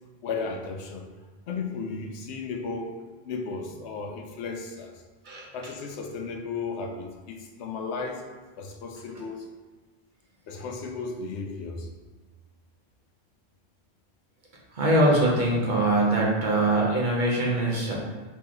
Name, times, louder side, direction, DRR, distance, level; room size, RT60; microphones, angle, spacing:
voice 1, 0.2-1.1 1.5-4.9 5.5-8.3 8.6-9.5 10.5-11.9, left 4 dB, 85° left, 3 dB, 0.9 m, -34 dB
voice 2, 14.7-17.9, right 1 dB, 50° right, -3 dB, 1.0 m, -22 dB
4.1 x 3.0 x 3.8 m, 1.3 s
omnidirectional pair, 1.1 m